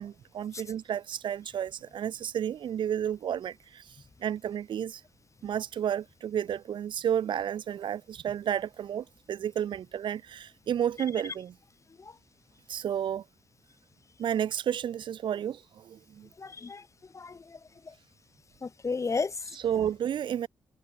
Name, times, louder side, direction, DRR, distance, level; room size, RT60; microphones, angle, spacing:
voice 1, 0.0-5.0 5.4-11.5 12.7-13.2 14.2-16.3 19.6-20.5, right 9 dB, 80° right, 1.3 m, -31 dB
voice 2, 16.4-17.9 18.6-19.6, left 4 dB, 40° left, 6.5 m, -35 dB
cardioid pair, 85°, 8 cm